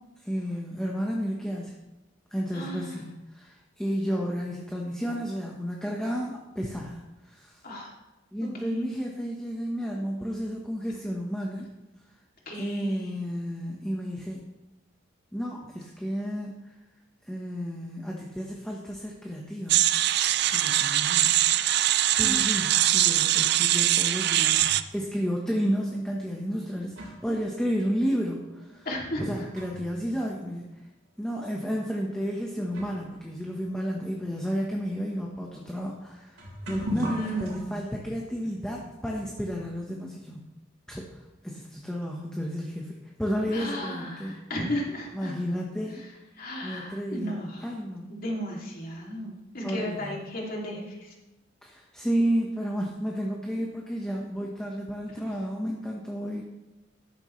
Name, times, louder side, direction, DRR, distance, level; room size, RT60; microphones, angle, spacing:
voice 1, 0.2-1.7 2.3-7.6 8.3-11.7 12.6-14.4 15.3-16.5 17.2-19.9 20.5-21.4 21.7-21.8 22.1-24.7 24.9-28.9 29.2-30.7 31.2-40.4 40.9-41.1 41.4-44.4 45.1-46.0 46.6-48.1 49.6-50.2 51.6-56.4, equal, 5° left, -2 dB, 1.2 m, -32 dB
voice 2, 2.5-2.9 7.6-7.9 8.6-8.8 12.5-13.1 22.2-22.4 28.8-29.3 37.1-37.8 43.5-45.3 46.4-47.7 48.1-51.1, equal, 45° left, -2 dB, 2.8 m, -34 dB
sound 1, 19.7-24.8, right 13 dB, 55° right, 0.5 m, -22 dB
sound 2, 24.2-24.9 25.8-25.9 26.6-30.0 30.3-30.4 31.2-31.4 32.2-32.3 32.7-37.6, equal, 80° right, 3.8 m, -40 dB
13.5 x 11.5 x 3.2 m, 1.0 s
head